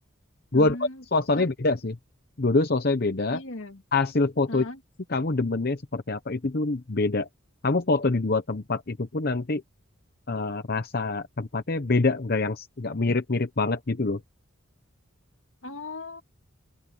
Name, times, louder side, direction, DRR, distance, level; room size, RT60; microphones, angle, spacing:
voice 1, 0.5-1.0 1.4-1.5 3.3-3.8 4.5-4.8 15.6-16.2, left 2 dB, 70° left, 2.0 m, -37 dB
voice 2, 1.1-2.0 2.4-3.4 3.9-4.7 5.1-7.3 7.6-9.6 10.3-14.2, left 3 dB, 45° left, 0.8 m, -25 dB
open air
head